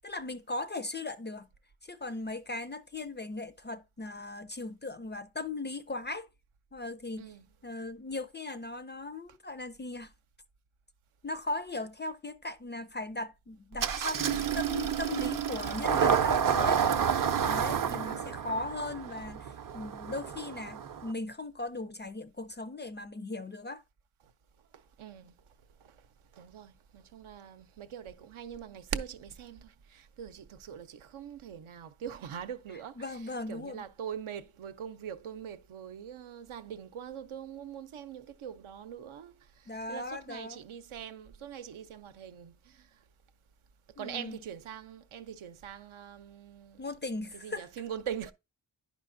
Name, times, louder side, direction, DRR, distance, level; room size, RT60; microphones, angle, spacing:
voice 1, 0.0-1.5 1.8-6.3 6.7-7.3 7.6-10.1 11.2-16.8 17.4-23.8 33.0-33.8 39.7-40.6 44.0-44.4 46.8-47.7, left 2 dB, 25° left, 0.4 m, -38 dB
Engine starting, 13.8-21.1, right 7 dB, 45° right, 0.6 m, -29 dB
voice 2, 17.8-18.2 24.7-25.3 25.8-26.0 26.3-43.0 44.0-46.8 47.3-48.3, right 8 dB, 80° right, 0.7 m, -43 dB
10.5 x 5.0 x 2.6 m
cardioid pair, 75°, 49 cm